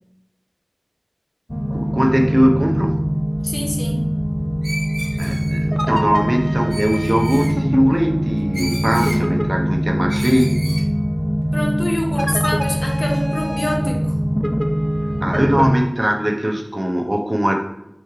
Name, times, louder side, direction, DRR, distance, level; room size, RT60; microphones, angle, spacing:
sound 1, 1.5-15.7, equal, ahead, 0.4 m, -22 dB
voice 1, 1.7-3.0 5.2-10.5 15.2-17.6, equal, 40° right, 2 dB, 0.6 m, -20 dB
voice 2, 3.4-4.1 11.5-14.1, left 1 dB, 80° left, 0 dB, 0.7 m, -26 dB
Screech, 4.6-5.6 6.7-7.5 8.5-9.2 10.1-10.9, right 1 dB, 85° right, 0.7 m, -32 dB
3.1 x 2.8 x 4.5 m, 0.86 s
wide cardioid pair, 40°, 0 cm